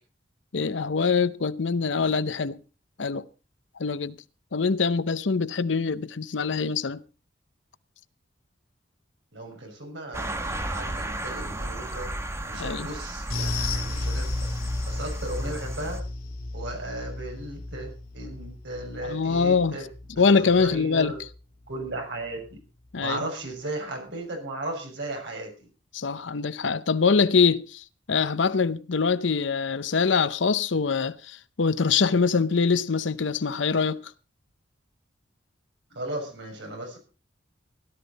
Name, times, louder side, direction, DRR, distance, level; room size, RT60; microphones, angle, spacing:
voice 1, 0.5-2.6 3.0-3.3 3.8-4.2 4.5-7.0 12.6-12.9 19.0-19.8 20.2-21.1 22.9-23.2 25.9-34.0, left 5 dB, 80° left, 0.7 m, -24 dB
voice 2, 9.3-12.1 12.4-14.5 14.8-16.0 16.5-19.9 20.1-21.2 21.7-22.6 23.0-25.7 35.9-37.0, right 2 dB, 70° right, 6.5 m, -36 dB
Ben Shewmaker - Old Military Road Morning, 10.1-16.0, right 1 dB, 15° right, 1.4 m, -34 dB
sound 1, 13.3-22.0 22.2-22.5 22.9-23.0, left 2 dB, 50° left, 3.4 m, -34 dB
17.0 x 12.5 x 4.1 m
head